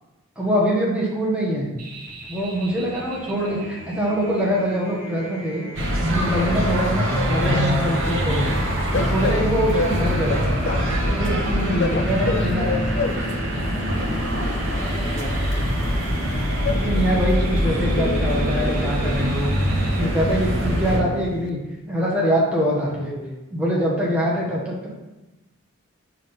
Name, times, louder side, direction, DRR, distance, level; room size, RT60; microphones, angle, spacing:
voice 1, 0.4-1.8 2.3-3.6 3.9-5.7 6.1-10.5 11.1-12.9 16.6-19.5 20.0-21.6 21.9-23.1 23.5-24.9, equal, 5° right, -5 dB, 1.2 m, -24 dB
sound 1, 1.8-20.0, right 1 dB, 40° right, 1.3 m, -39 dB
sound 2, 5.8-21.0, equal, 65° right, 1.3 m, -23 dB
voice 2, 6.7-7.0 9.7-10.1 11.9-12.4 14.6-15.7 22.8-23.6 24.3-24.6, equal, 35° left, 1 dB, 0.8 m, -39 dB
Train, 7.5-21.5, left 4 dB, 50° left, 0.3 m, -32 dB
5.3 x 3.8 x 5.3 m, 1.1 s
head